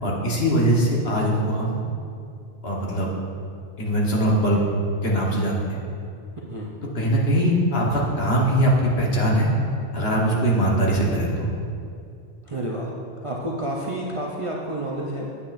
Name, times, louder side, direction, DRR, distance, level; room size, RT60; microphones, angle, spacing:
voice 1, 0.0-1.8 2.6-3.1 3.8-4.6 5.0-5.8 6.9-8.7 9.0-9.5 9.9-11.5, right 1 dB, 55° left, -3 dB, 1.4 m, -21 dB
voice 2, 12.4-12.9 13.2-15.4, right 1 dB, 35° right, -4 dB, 0.5 m, -30 dB
8.7 x 8.4 x 2.5 m, 2.4 s
omnidirectional pair, 1.2 m